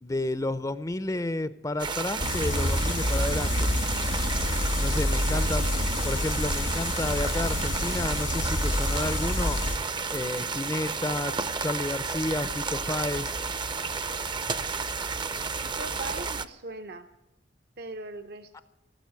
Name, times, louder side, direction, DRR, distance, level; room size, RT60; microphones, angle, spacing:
voice 1, 0.0-3.7 4.8-5.7 6.0-9.6 10.1-11.3 11.6-13.4, left 2 dB, 20° left, 14 dB, 0.5 m, -31 dB
sound 1, 1.8-16.5, right 5 dB, 25° right, 0.6 m, -32 dB
sound 2, 2.2-9.8, left 1 dB, 85° left, 2.0 m, -28 dB
voice 2, 15.6-17.1 17.8-18.6, right 3 dB, 55° right, 8 dB, 0.8 m, -39 dB
17.5 x 8.0 x 9.4 m, 0.92 s
head